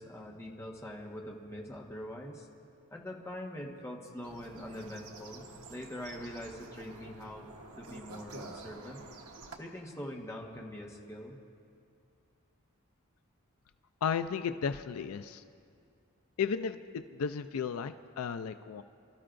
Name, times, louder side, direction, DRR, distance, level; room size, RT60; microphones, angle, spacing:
voice 1, 0.0-2.5 2.9-7.4 7.8-9.0 9.6-11.4, left 1 dB, 15° left, -1 dB, 1.3 m, -43 dB
sound 1, 4.2-9.6, right 2 dB, 80° right, 1.2 m, -49 dB
voice 2, 14.0-15.4 16.4-18.8, left 6 dB, 75° left, 10 dB, 0.4 m, -34 dB
29.5 x 13.0 x 2.6 m, 2.4 s
head